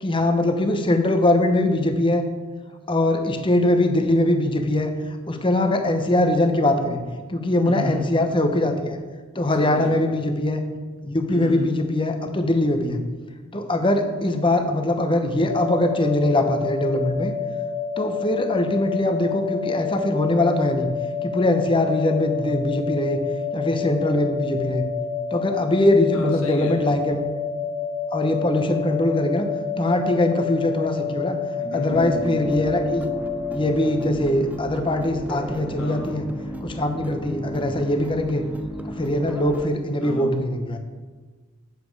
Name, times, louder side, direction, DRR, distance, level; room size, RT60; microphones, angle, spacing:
voice 1, 0.0-2.2 2.9-7.0 7.3-9.0 9.3-10.6 11.0-13.0 13.5-17.3 18.0-20.9 21.2-23.2 23.5-24.8 25.3-27.2 28.1-29.5 29.8-31.4 31.7-33.1 33.5-36.3 36.6-38.4 38.8-40.8, left 1 dB, 25° left, 6 dB, 0.9 m, -22 dB
voice 2, 7.6-8.0 9.6-10.1 11.3-11.7 26.1-27.0 31.6-32.6 35.8-36.2 40.0-40.4, left 1 dB, 70° left, 1 dB, 1.7 m, -32 dB
sound 1, 15.5-34.1, left 6 dB, 50° right, 2.1 m, -29 dB
sound 2, 31.9-39.7, right 1 dB, 5° right, 0.3 m, -34 dB
8.4 x 7.5 x 4.7 m, 1.4 s
head